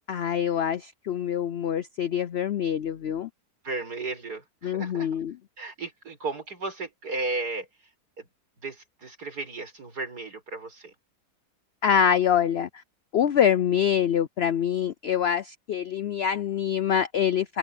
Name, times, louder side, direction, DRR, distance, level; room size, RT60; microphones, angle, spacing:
voice 1, 0.1-3.3 4.6-5.4 11.8-12.7 13.1-17.6, left 9 dB, 70° left, 0.6 m, -25 dB
voice 2, 3.6-5.1 5.6-7.7 8.2-8.3 8.6-10.9, right 3 dB, 75° right, 6.1 m, -34 dB
open air
omnidirectional pair, 1.7 m